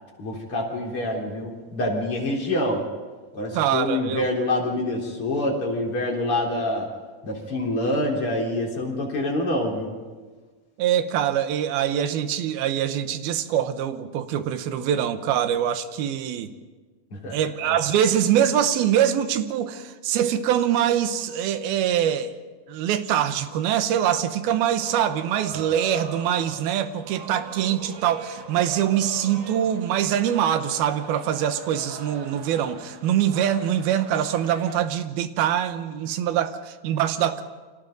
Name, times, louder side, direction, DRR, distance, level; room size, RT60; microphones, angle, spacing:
voice 1, 0.2-2.8 3.3-6.9 7.2-9.9 17.1-17.4 17.7-17.8 25.5-25.7, left 1 dB, 35° left, -2 dB, 4.4 m, -26 dB
voice 2, 3.5-4.3 10.8-16.5 17.3-22.3 22.7-37.4, right 10 dB, 85° right, 10 dB, 2.9 m, -24 dB
sound 1, 24.8-34.8, right 5 dB, 45° right, 1.7 m, -40 dB
29.5 x 25.0 x 4.0 m, 1.4 s
omnidirectional pair, 4.2 m